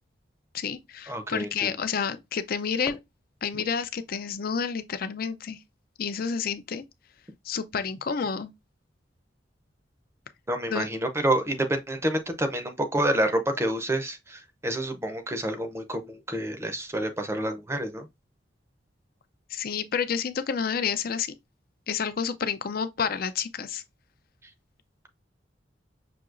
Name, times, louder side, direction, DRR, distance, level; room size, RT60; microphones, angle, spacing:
voice 1, 0.5-3.0 3.4-5.6 6.0-6.8 7.4-8.5 10.7-10.9 19.5-21.4 21.9-23.8, left 6 dB, 55° left, 0.5 m, -29 dB
voice 2, 1.1-1.7 3.5-3.6 10.5-18.1, right 1 dB, 15° right, 0.6 m, -28 dB
5.9 x 2.8 x 2.5 m
head